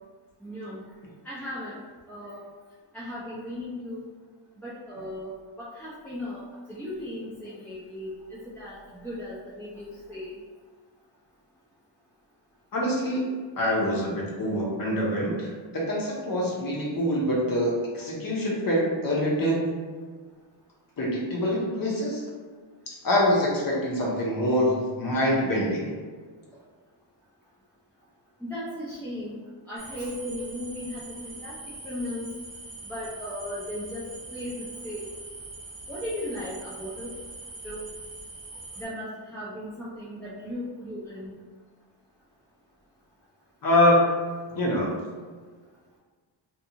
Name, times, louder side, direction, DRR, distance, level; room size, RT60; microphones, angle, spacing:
voice 1, 0.4-0.8 1.2-1.8 2.1-2.4 2.9-4.1 4.6-5.3 5.6-6.4 6.7-8.1 8.6-10.3 28.4-29.4 29.7-31.5 31.8-32.3 32.9-34.0 34.3-35.1 35.9-37.1 37.6-37.9 38.8-41.3, left 1 dB, 5° left, -10 dB, 0.3 m, -36 dB
voice 2, 12.7-13.2 13.6-19.7 21.0-22.2 22.9-25.9 43.6-44.0 44.5-44.9, left 1 dB, 45° left, -4 dB, 0.7 m, -25 dB
sound 1, 29.8-38.9, right 2 dB, 45° right, 0.7 m, -42 dB
2.6 x 2.3 x 2.7 m, 1.5 s
wide cardioid pair, 155°, 48 cm